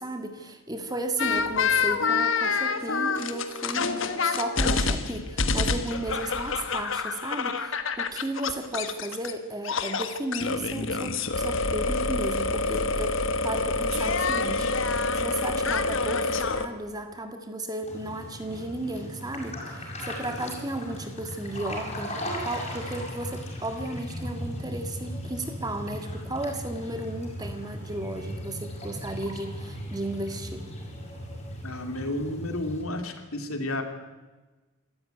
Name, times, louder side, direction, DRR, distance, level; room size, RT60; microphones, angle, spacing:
voice 1, 0.0-22.2 22.4-30.7, right 1 dB, 20° right, 6 dB, 1.8 m, -34 dB
sound 1, 1.2-9.3 9.6-16.7, left 4 dB, 65° left, 1.5 m, -27 dB
sound 2, 17.8-32.8, equal, 30° left, 6.6 m, -37 dB
voice 2, 31.6-33.8, left 1 dB, 85° left, 5 dB, 3.0 m, -31 dB
25.5 x 14.0 x 9.4 m, 1.2 s
head